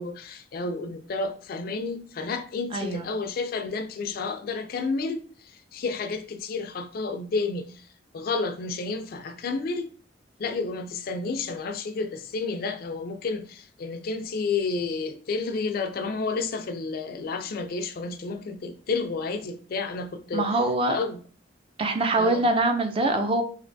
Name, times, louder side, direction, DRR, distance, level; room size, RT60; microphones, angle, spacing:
voice 1, 0.0-5.2 5.7-7.7 8.1-9.9 10.4-20.5 20.9-21.2 22.2-22.5, left 4 dB, 55° left, 0.3 m, -31 dB
voice 2, 2.7-3.0 20.3-21.0 21.8-23.4, right 2 dB, 30° right, 0.4 m, -24 dB
3.2 x 2.8 x 2.6 m
head